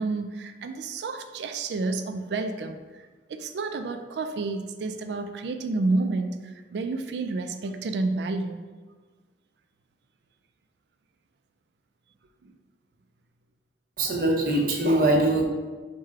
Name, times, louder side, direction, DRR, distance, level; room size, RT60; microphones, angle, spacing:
voice 1, 0.0-8.6 12.4-12.5, right 3 dB, 75° right, 7 dB, 0.4 m, -30 dB
voice 2, 14.0-15.4, right 1 dB, 55° right, -1 dB, 0.8 m, -22 dB
4.8 x 2.2 x 4.7 m, 1.4 s
head